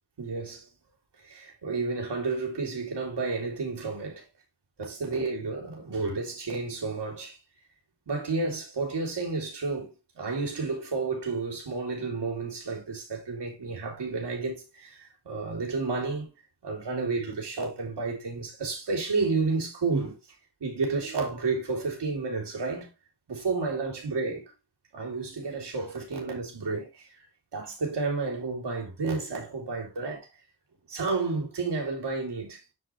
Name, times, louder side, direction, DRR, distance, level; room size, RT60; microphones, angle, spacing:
voice 1, 0.2-0.7 1.2-4.2 4.8-7.4 8.1-16.3 16.6-20.2 20.6-22.9 23.3-24.4 24.9-27.2 27.5-30.3 30.9-32.7, right 4 dB, 75° right, 3.8 m, -31 dB
9.5 x 5.2 x 3.4 m
cardioid pair, 70°, 41 cm